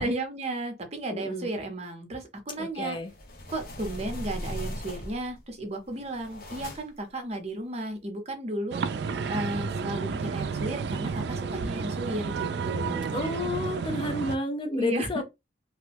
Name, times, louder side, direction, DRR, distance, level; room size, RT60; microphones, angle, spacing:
voice 1, 0.0-3.0 3.5-8.8 9.3-13.2 14.7-15.2, right 1 dB, 35° right, 0.8 m, -34 dB
voice 2, 1.1-1.5 2.6-3.1 13.1-15.2, left 2 dB, 30° left, 0.4 m, -31 dB
sound 1, 2.9-5.4 5.9-7.1, equal, 55° left, 1.0 m, -38 dB
sound 2, 8.7-14.4, right 5 dB, 65° right, 0.3 m, -31 dB
3.0 x 2.2 x 3.3 m
head